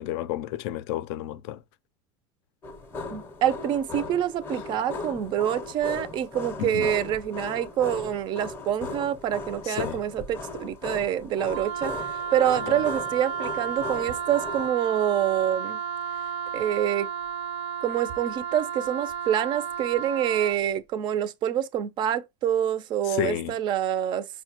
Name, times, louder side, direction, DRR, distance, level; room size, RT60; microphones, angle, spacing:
voice 1, 0.0-1.6 6.6-6.9 9.7-10.0 12.7-12.8 23.1-23.6, left 13 dB, 60° left, 0.4 m, -31 dB
sound 1, 2.6-14.7, left 3 dB, 15° left, 0.6 m, -37 dB
voice 2, 3.1-15.8 16.5-17.1 17.8-24.3, right 10 dB, 30° right, 0.4 m, -26 dB
Wind instrument woodwind instrument, 11.5-20.6, right 7 dB, 70° right, 0.6 m, -32 dB
5.3 x 2.2 x 2.8 m
supercardioid pair, 155°, 15 cm